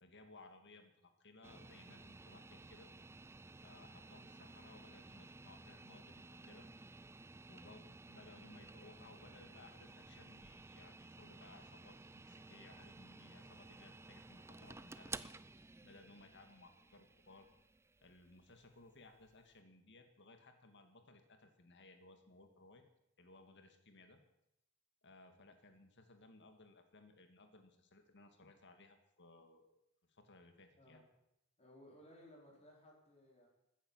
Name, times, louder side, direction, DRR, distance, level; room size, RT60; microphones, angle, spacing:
voice 1, 0.0-2.9 3.6-6.7 7.5-15.3 15.8-17.5 18.0-22.8 23.2-24.2 25.0-29.8 30.1-31.0, left 2 dB, 55° left, 7 dB, 1.9 m, -61 dB
sound 1, 1.4-19.5, right 3 dB, 10° right, 0.4 m, -55 dB
voice 2, 31.6-33.5, left 1 dB, 30° left, -2 dB, 4.6 m, -60 dB
14.5 x 9.8 x 7.2 m, 0.83 s
head